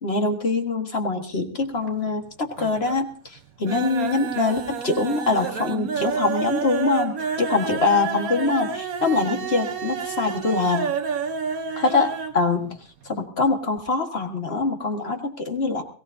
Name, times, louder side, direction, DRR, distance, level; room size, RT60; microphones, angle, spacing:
voice 1, 0.0-10.9 11.8-12.1 12.3-12.8 13.1-15.8, left 3 dB, 45° left, 4 dB, 2.0 m, -24 dB
sound 1, 1.6-2.2 2.5-3.1 3.4-12.4 12.7-12.8 13.1-13.2, right 6 dB, 80° right, 1.6 m, -29 dB
22.0 x 17.5 x 2.8 m, 0.42 s
omnidirectional pair, 1.5 m